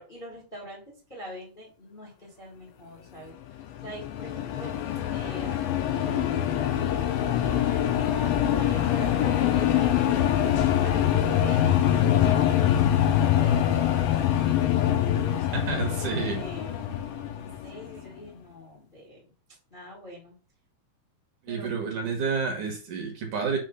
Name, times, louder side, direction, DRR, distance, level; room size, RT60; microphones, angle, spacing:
voice 1, 0.0-4.8 5.1-7.0 7.4-10.5 10.8-16.8 17.4-19.2 19.7-20.3 21.5-21.7, equal, 20° left, 1.3 m, -45 dB
sound 1, 3.5-18.0, left 10 dB, 80° left, 2.5 m, -24 dB
voice 2, 15.5-16.4 21.4-23.6, right 5 dB, 60° right, 2.5 m, -29 dB
6.4 x 3.2 x 5.6 m
omnidirectional pair, 4.4 m